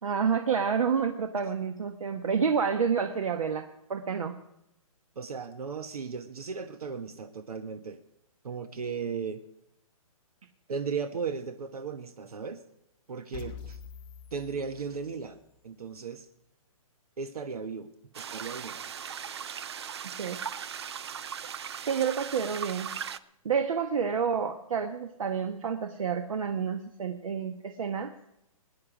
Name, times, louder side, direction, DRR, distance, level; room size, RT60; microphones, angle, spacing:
voice 1, 0.0-4.4 20.2-20.4 21.9-22.9 23.4-28.1, right 6 dB, 65° right, 7 dB, 1.2 m, -29 dB
voice 2, 5.2-8.0 8.4-9.4 10.7-12.6 13.1-13.8 14.3-15.4 15.6-16.3 17.2-17.9 18.2-18.8, right 5 dB, 90° right, 8 dB, 1.3 m, -36 dB
sound 1, 13.3-15.4, left 8 dB, 15° left, 0.7 m, -45 dB
sound 2, 18.1-23.2, right 8 dB, 45° right, 0.5 m, -38 dB
22.0 x 9.8 x 4.9 m, 0.84 s
hypercardioid pair, 170°, 19 cm